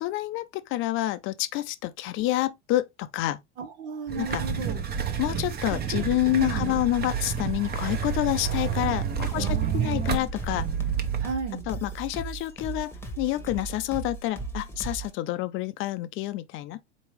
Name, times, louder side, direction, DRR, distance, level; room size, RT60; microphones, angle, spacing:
voice 1, 0.0-3.4 4.1-4.4 5.2-10.7 11.7-12.9 13.2-16.9, left 16 dB, 35° left, 0.4 m, -28 dB
voice 2, 3.6-4.8 6.3-6.7 9.4-10.3 11.2-11.6, right 6 dB, 75° right, 1.3 m, -34 dB
sound 1, 4.1-11.3, right 7 dB, 25° right, 0.8 m, -29 dB
sound 2, 9.1-15.1, right 4 dB, 5° left, 1.2 m, -37 dB
4.4 x 3.0 x 3.1 m
hypercardioid pair, 95°, 35 cm